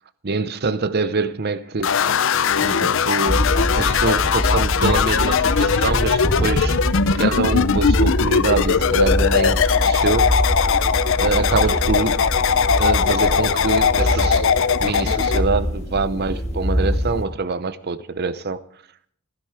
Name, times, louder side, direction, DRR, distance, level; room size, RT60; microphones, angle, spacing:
voice 1, 0.2-2.0 2.6-6.8 7.1-10.3 11.2-12.2 12.7-14.5 14.8-18.6, right 4 dB, 50° right, 0.7 m, -25 dB
sound 1, 1.8-15.4, left 6 dB, 60° left, 0.6 m, -20 dB
sound 2, 3.3-17.2, equal, 30° left, 1.8 m, -24 dB
15.5 x 12.0 x 4.8 m
head